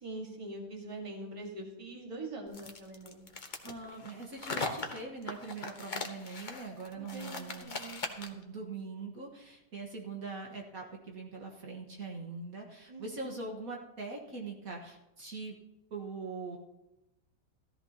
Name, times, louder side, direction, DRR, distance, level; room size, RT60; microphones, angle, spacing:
voice 1, 0.0-3.2 6.9-8.0 12.9-13.4, right 2 dB, 20° right, 1 dB, 1.8 m, -43 dB
sound 1, 2.5-8.4, left 3 dB, 30° left, 1.0 m, -40 dB
voice 2, 3.6-7.8 8.1-15.6 15.9-16.6, right 3 dB, 55° right, -1 dB, 1.9 m, -42 dB
15.0 x 14.0 x 2.9 m, 0.95 s
omnidirectional pair, 1.8 m